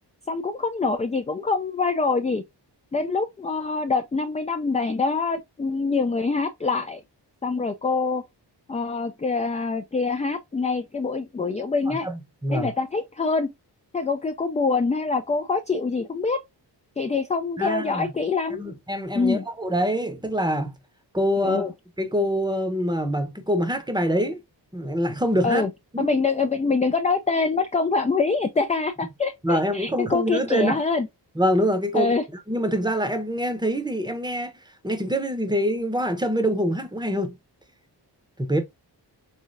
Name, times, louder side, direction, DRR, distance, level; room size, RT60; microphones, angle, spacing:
voice 1, 0.3-2.4 2.9-7.0 7.4-8.2 8.7-12.1 12.5-13.5 13.9-16.4 17.0-18.6 19.1-19.4 21.4-21.7 25.4-25.7 26.0-31.1 31.9-32.2, left 4 dB, 20° left, 0.3 m, -25 dB
voice 2, 11.8-12.7 17.6-18.1 18.5-20.8 21.1-21.6 22.0-24.4 24.7-25.7 25.9-26.2 29.4-30.8 31.3-32.1 32.5-34.5 34.8-37.4 38.4-38.6, equal, 10° right, 0.8 m, -25 dB
3.6 x 3.2 x 2.5 m
wide cardioid pair, 80°, 43 cm